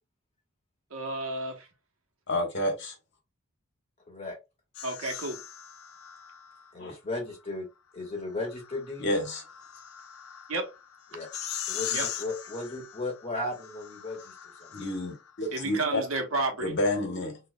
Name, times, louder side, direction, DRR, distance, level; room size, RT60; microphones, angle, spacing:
voice 1, 0.9-1.7 4.8-5.4 10.5-10.7 11.9-12.1 15.5-16.7, right 2 dB, 70° right, 1.1 m, -31 dB
voice 2, 2.3-2.9 6.8-7.0 9.0-9.4 14.7-16.0 16.6-17.4, left 1 dB, 60° left, 1.4 m, -29 dB
voice 3, 4.1-4.4 6.7-7.7 7.9-9.1 11.1-11.3 11.7-14.3 14.6-14.7, left 2 dB, 30° left, 1.7 m, -35 dB
sound 1, 4.7-6.7 8.2-15.3, left 10 dB, 85° left, 0.5 m, -40 dB
4.1 x 3.1 x 2.2 m
head